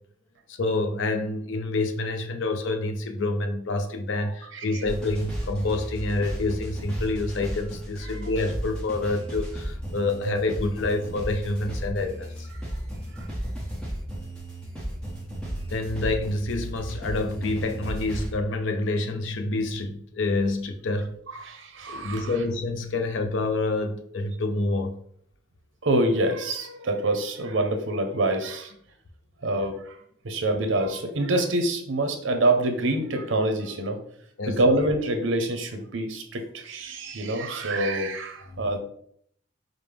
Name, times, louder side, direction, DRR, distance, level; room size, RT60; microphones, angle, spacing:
voice 1, 0.5-12.5 15.7-21.2 21.9-25.0 34.4-34.6 38.5-38.7, left 2 dB, 75° left, 6 dB, 0.5 m, -27 dB
sound 1, 4.8-18.3, equal, 5° left, 0.8 m, -34 dB
voice 2, 21.3-22.2 25.8-28.7 29.4-29.8 30.2-34.0 34.5-38.8, right 1 dB, 80° right, 6 dB, 0.6 m, -26 dB
5.0 x 2.0 x 3.2 m, 0.65 s
head